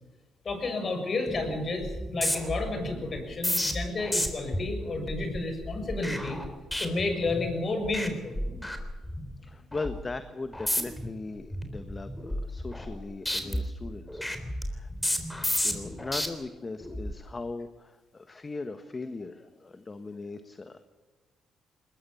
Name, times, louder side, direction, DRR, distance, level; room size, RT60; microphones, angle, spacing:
voice 1, 0.4-6.4 6.8-8.4, left 2 dB, 45° left, 6 dB, 6.9 m, -31 dB
sound 1, 1.3-1.5 1.8-7.5 7.8-8.1 8.4-9.3 9.7-10.0 10.5-11.1 11.5-13.0 13.3-16.3 16.8-17.1, left 1 dB, 10° left, 3.8 m, -32 dB
voice 2, 9.4-14.3 14.6-14.9 15.6-20.8, left 3 dB, 30° left, 9 dB, 1.5 m, -39 dB
21.0 x 20.5 x 7.2 m, 1.3 s
cardioid pair, 90°, 0 cm